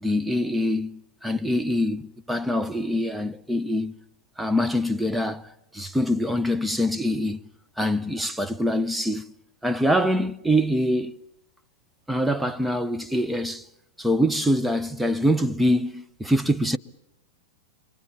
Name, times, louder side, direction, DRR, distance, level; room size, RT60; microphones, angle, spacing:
voice 1, 0.0-4.0 4.4-5.5 5.7-7.4 7.8-9.2 9.6-11.2 12.1-13.7 14.0-16.8, equal, 5° right, 0.9 m, -24 dB
28.0 x 24.0 x 7.2 m
supercardioid pair, 135°, 0 cm